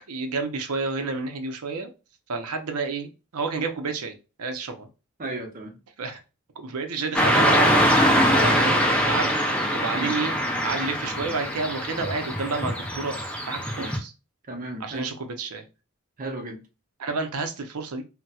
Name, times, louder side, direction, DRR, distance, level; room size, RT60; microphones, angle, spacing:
voice 1, 0.1-1.9 2.3-4.9 6.0-6.2 6.6-7.9 8.5-9.3 9.7-10.4 10.6-13.2 13.5-14.1 14.8-15.6 17.0-18.0, right 4 dB, 90° right, 0.6 m, -30 dB
voice 2, 5.2-5.7 8.3-8.6 9.9-10.1 13.8-13.9 14.5-15.1 16.2-16.6, right 2 dB, 40° right, 0.8 m, -33 dB
Car passing by / Traffic noise roadway noise, 7.1-14.0, equal, 5° left, 0.5 m, -23 dB
4.1 x 2.2 x 2.3 m
head